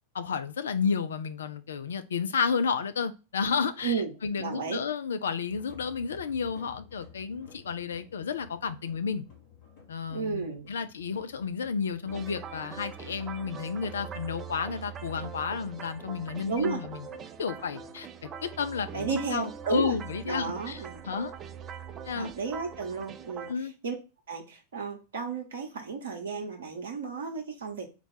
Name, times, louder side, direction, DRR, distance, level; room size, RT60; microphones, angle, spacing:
voice 1, 0.1-9.3 9.9-17.1 17.4-21.3 22.1-22.3 23.5-23.7, left 6 dB, 65° left, 0.4 m, -32 dB
voice 2, 4.4-4.8 10.1-10.7 16.5-16.8 18.9-19.9 20.3-21.0 22.1-23.5 23.8-23.9 24.3-27.9, right 5 dB, 60° right, 0.7 m, -33 dB
sound 1, 5.5-18.0, left 7 dB, 45° left, 1.4 m, -54 dB
sound 2, 12.1-23.5, right 7 dB, 25° right, 0.4 m, -42 dB
4.1 x 2.3 x 4.2 m
figure-of-eight pair, 90°, 0 cm